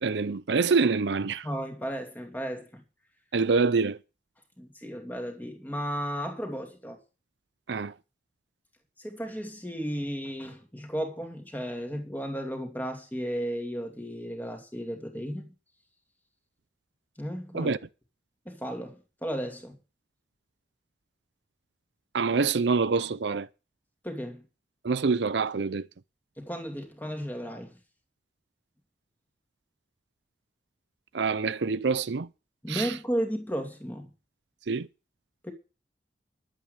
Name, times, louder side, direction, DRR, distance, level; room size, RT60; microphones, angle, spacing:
voice 1, 0.0-1.5 3.3-4.0 7.7-7.9 17.5-17.8 22.1-23.5 24.8-25.9 31.1-32.3 32.7-32.9 34.7-34.9, right 4 dB, 70° right, 0.5 m, -26 dB
voice 2, 1.4-2.8 4.6-7.0 9.0-15.5 17.2-17.7 18.5-19.8 24.0-24.4 26.4-27.8 32.6-34.1 35.4-35.5, equal, 10° left, 2.6 m, -34 dB
11.5 x 8.9 x 6.6 m
head